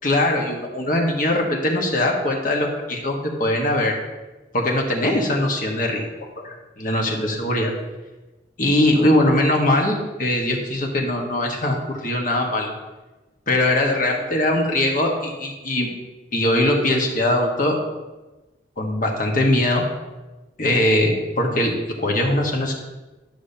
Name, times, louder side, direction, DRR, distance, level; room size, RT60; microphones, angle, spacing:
voice 1, 0.0-4.0 4.5-6.1 6.4-7.7 8.6-12.7 13.5-15.9 16.3-17.8 18.8-19.8 20.6-22.7, left 1 dB, 45° left, 1 dB, 1.4 m, -21 dB
12.0 x 6.6 x 2.8 m, 1.1 s
head